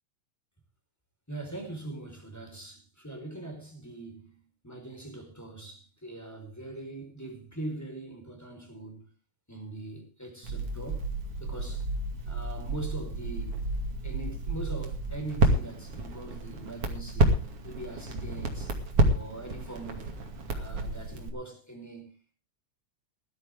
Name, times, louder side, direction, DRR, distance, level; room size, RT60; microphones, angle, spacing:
voice 1, 1.3-4.4 4.6-9.1 9.5-11.1 11.4-11.9 12.2-13.7 14.0-18.8 19.1-20.1 20.5-22.1, right 2 dB, 5° left, 4.6 m, -42 dB
Crackle, 10.4-21.3, right 2 dB, 50° right, 3.2 m, -30 dB
19.0 x 12.5 x 3.6 m
omnidirectional pair, 3.3 m